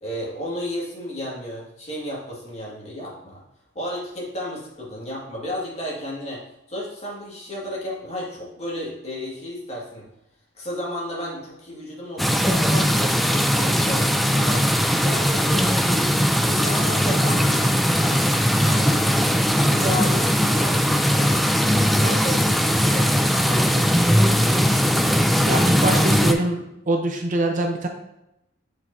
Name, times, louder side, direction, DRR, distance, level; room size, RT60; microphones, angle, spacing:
voice 1, 0.0-3.4 3.7-6.4 6.7-10.1 10.5-14.6 15.0-16.1 16.4-19.2 19.7-21.4 22.0-24.9, left 1 dB, 35° left, -5 dB, 2.0 m, -33 dB
sound 1, 12.2-26.3, equal, ahead, 0.4 m, -19 dB
voice 2, 19.6-20.0 25.5-27.9, right 2 dB, 40° right, 3 dB, 0.7 m, -24 dB
7.7 x 4.9 x 2.7 m, 0.86 s
head